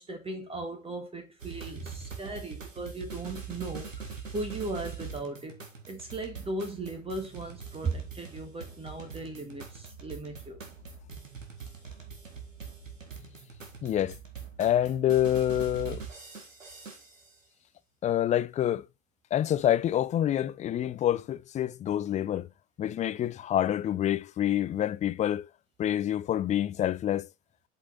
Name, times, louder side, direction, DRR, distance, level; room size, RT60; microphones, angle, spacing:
voice 1, 0.0-5.6 5.9-10.6, right 2 dB, 15° right, 1.8 m, -37 dB
sound 1, 1.4-17.3, right 5 dB, 80° right, 1.9 m, -43 dB
voice 2, 13.8-14.2 14.6-16.0 18.0-18.9 19.3-22.5 22.8-25.5 25.8-27.3, left 11 dB, 20° left, 0.5 m, -27 dB
7.9 x 5.7 x 4.0 m
figure-of-eight pair, 80°, 38 cm